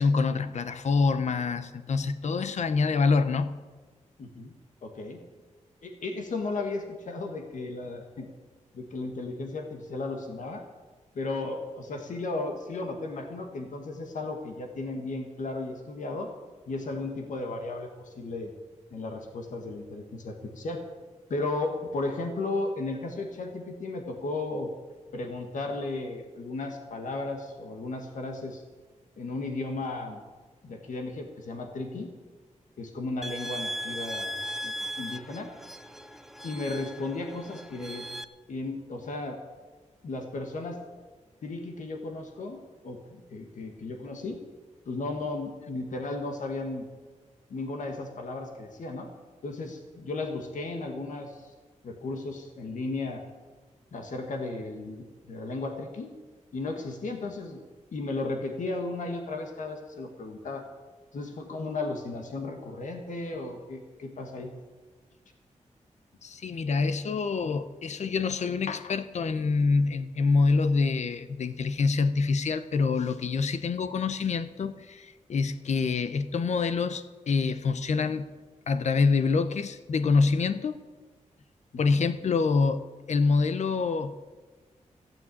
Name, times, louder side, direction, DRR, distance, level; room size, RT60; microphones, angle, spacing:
voice 1, 0.0-3.6 66.2-78.3 78.7-80.8 81.8-84.2, left 4 dB, 65° left, 0.8 m, -26 dB
voice 2, 4.2-4.5 4.8-5.2 5.8-8.3 8.7-10.6 11.2-16.3 16.7-18.5 18.9-20.8 21.3-24.7 25.1-28.6 29.2-30.2 30.6-32.1 32.8-35.5 36.4-38.0 38.5-39.4 40.0-40.8 41.4-44.4 44.9-46.9 47.5-49.1 49.4-51.5 51.8-53.2 53.9-56.1 56.5-57.6 57.9-60.6 61.1-64.5 81.9-82.0, left 2 dB, 80° left, 1.7 m, -35 dB
sound 1, 33.2-38.2, equal, ahead, 0.6 m, -38 dB
15.0 x 9.1 x 8.5 m
wide cardioid pair, 140°, 13 cm